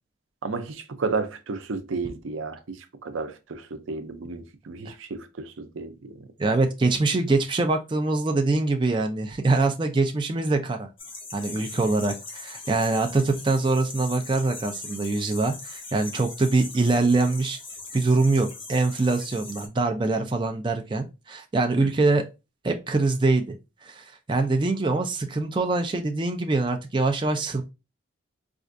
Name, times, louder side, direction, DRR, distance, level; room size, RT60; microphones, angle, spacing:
voice 1, 0.4-2.8 3.0-6.2 21.8-21.9, right 4 dB, 85° right, 0.5 m, -32 dB
voice 2, 6.4-10.9 11.3-17.6 17.9-22.2 22.6-23.6 23.8-27.6, right 3 dB, 25° right, 0.4 m, -24 dB
sound 1, 11.0-19.7, left 3 dB, 30° left, 0.7 m, -40 dB
4.3 x 2.4 x 2.5 m
head